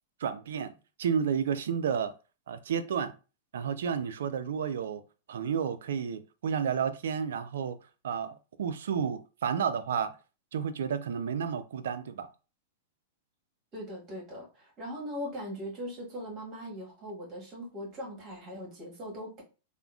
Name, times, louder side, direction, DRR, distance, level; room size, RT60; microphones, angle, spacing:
voice 1, 0.2-0.7 1.0-2.1 2.5-3.1 3.5-5.0 5.3-7.8 8.0-10.2 10.5-12.3, right 7 dB, 70° right, 0.3 m, -31 dB
voice 2, 13.7-19.4, equal, 35° right, 1.5 m, -40 dB
3.5 x 2.1 x 2.4 m
hypercardioid pair, 105°, 0 cm